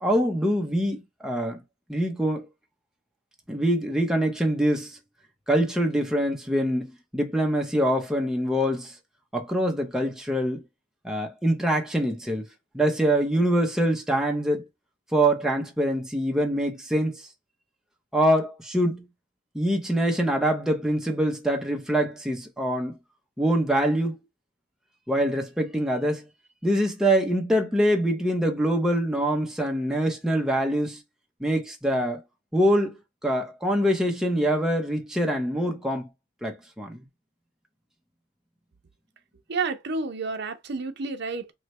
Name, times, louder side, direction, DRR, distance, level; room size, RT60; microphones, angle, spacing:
voice 1, 0.0-1.0 1.2-1.6 1.9-2.5 3.5-5.0 5.5-8.9 9.3-10.6 11.0-12.5 12.7-14.6 15.1-17.3 18.1-19.0 19.5-23.0 23.4-24.2 25.1-26.2 26.6-31.0 31.4-32.2 32.5-33.0 33.2-36.1 36.4-37.0, right 1 dB, 5° right, 0.7 m, -24 dB
voice 2, 39.5-41.5, right 4 dB, 60° right, 0.7 m, -30 dB
3.2 x 2.2 x 4.1 m
head